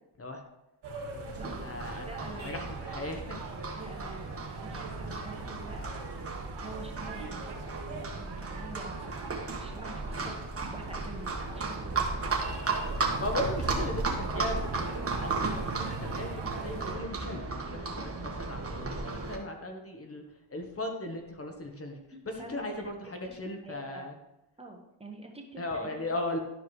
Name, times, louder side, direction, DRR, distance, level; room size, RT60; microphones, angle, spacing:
sound 1, 0.8-16.9, right 4 dB, 60° right, 1.7 m, -43 dB
voice 1, 1.0-3.4 13.2-20.2 20.5-22.0 22.2-24.1 25.6-26.4, left 1 dB, 30° left, 3 dB, 1.3 m, -37 dB
Livestock farm animals working animals, 1.3-19.4, right 3 dB, 30° right, 1.5 m, -35 dB
voice 2, 2.0-2.7 3.0-3.1 3.8-5.8 6.6-7.5 8.0-9.2 9.6-10.4 10.7-12.1 13.3-13.5 22.3-22.6 23.2-23.4 23.6-24.0 24.6-26.0, right 2 dB, 15° right, 1 dB, 1.3 m, -46 dB
11.5 x 4.7 x 3.2 m, 0.88 s
cardioid pair, 75°, 46 cm